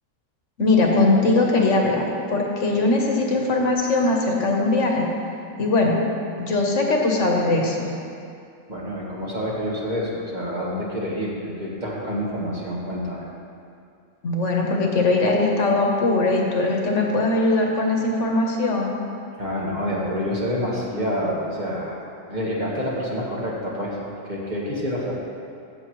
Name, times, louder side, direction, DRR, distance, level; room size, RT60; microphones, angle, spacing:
voice 1, 0.6-5.1 5.6-6.0 6.4-7.9 14.2-18.9, left 2 dB, 70° left, 0 dB, 1.4 m, -20 dB
voice 2, 8.7-13.2 19.4-22.0 22.3-24.0 24.2-25.1, equal, 35° right, -5 dB, 1.6 m, -27 dB
16.5 x 6.6 x 3.1 m, 2.5 s
omnidirectional pair, 1.3 m